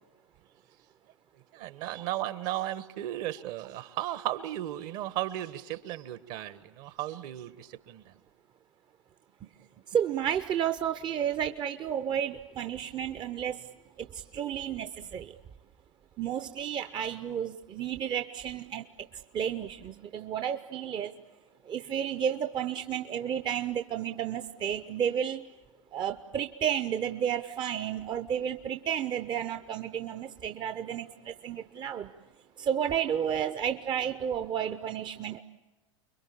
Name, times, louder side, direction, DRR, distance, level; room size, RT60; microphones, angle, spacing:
voice 1, 1.5-8.0, right 13 dB, 50° right, 13 dB, 1.4 m, -35 dB
voice 2, 9.9-13.7 14.0-15.4 16.2-21.1 21.6-25.4 25.9-32.1 32.6-35.4, right 9 dB, 30° right, 10 dB, 0.9 m, -32 dB
29.5 x 22.5 x 8.5 m, 1.1 s
hypercardioid pair, 95°, 17 cm